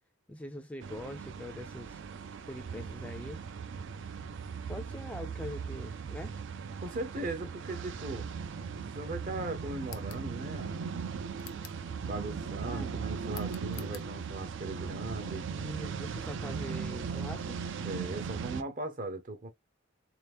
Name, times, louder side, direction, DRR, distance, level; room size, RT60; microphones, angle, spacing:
voice 1, 0.3-2.0 2.5-3.4 4.7-6.3 12.6-12.9 15.3-17.6, left 1 dB, 5° left, 0.3 m, -43 dB
sound 1, 0.8-18.6, right 6 dB, 65° right, 0.4 m, -38 dB
voice 2, 6.8-8.3 8.9-10.9 12.0-15.5 17.8-19.5, right 2 dB, 40° right, 0.8 m, -38 dB
sound 2, 9.8-10.3 11.4-11.9 13.3-14.1, left 12 dB, 70° left, 0.5 m, -49 dB
3.9 x 2.9 x 3.4 m
head